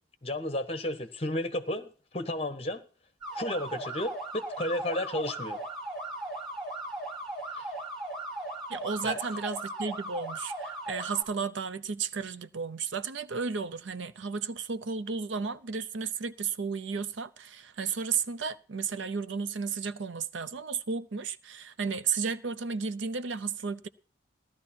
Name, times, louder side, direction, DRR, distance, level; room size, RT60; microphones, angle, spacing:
voice 1, 0.2-2.8 3.3-5.6 7.5-7.7 9.0-9.2, left 1 dB, 30° left, 1.1 m, -33 dB
sound 1, 3.2-11.2, right 2 dB, ahead, 5.4 m, -37 dB
voice 2, 8.7-23.9, right 5 dB, 75° right, 0.7 m, -33 dB
15.5 x 12.0 x 4.3 m
head